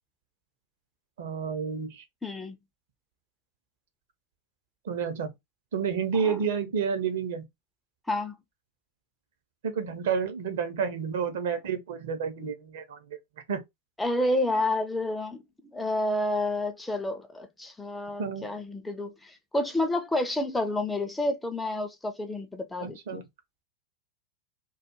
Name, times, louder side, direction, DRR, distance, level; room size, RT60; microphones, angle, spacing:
voice 1, 1.2-2.0 4.8-5.3 5.7-7.5 9.6-13.2 13.5-13.6 18.2-18.5 22.8-23.2, right 6 dB, 55° right, 0.7 m, -30 dB
voice 2, 2.2-2.6 6.1-6.4 8.1-8.3 14.0-15.4 15.7-23.2, left 1 dB, 5° left, 0.4 m, -29 dB
2.3 x 2.1 x 2.9 m
figure-of-eight pair, 90°, 0 cm